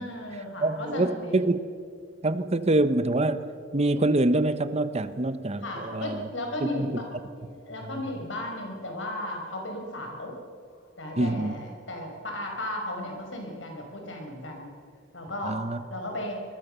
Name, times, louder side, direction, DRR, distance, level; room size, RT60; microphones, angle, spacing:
voice 1, 0.0-1.4 5.6-7.1 7.4-10.4 11.0-14.7 15.1-16.4, left 1 dB, 80° left, 2 dB, 5.7 m, -35 dB
voice 2, 0.6-1.6 2.2-3.5 3.7-6.3 6.7-6.9 7.8-8.0 11.2-11.6 15.4-15.8, right 2 dB, 35° right, 12 dB, 0.9 m, -25 dB
24.5 x 21.5 x 6.8 m, 2.1 s
head